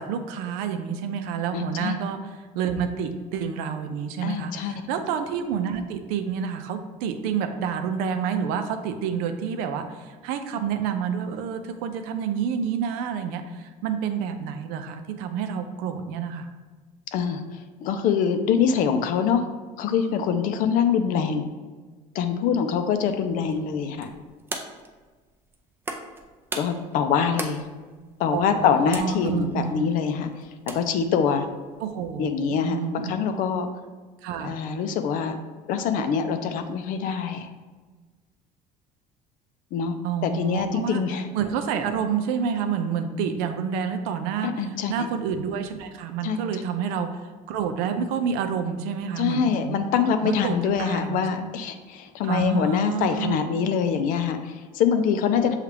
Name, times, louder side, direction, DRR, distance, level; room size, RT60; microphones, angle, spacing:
voice 1, 0.0-16.5 28.3-29.9 31.8-33.1 34.2-34.5 40.0-41.0 41.3-47.2 47.5-49.8 50.2-51.5 52.2-53.4, right 7 dB, 80° right, 7 dB, 0.5 m, -29 dB
voice 2, 1.5-2.0 4.2-4.7 17.1-17.4 17.8-19.4 19.8-21.5 22.1-24.1 26.5-27.6 28.2-30.3 30.7-31.5 32.2-33.7 34.4-35.4 35.7-37.5 39.7-40.0 40.2-41.3 44.4-45.1 46.2-46.4 49.2-55.5, left 7 dB, 65° left, 7 dB, 0.5 m, -24 dB
sound 1, 22.8-32.5, right 2 dB, 15° right, 0.4 m, -41 dB
6.6 x 2.4 x 3.3 m, 1.4 s
cardioid pair, 120°, 15 cm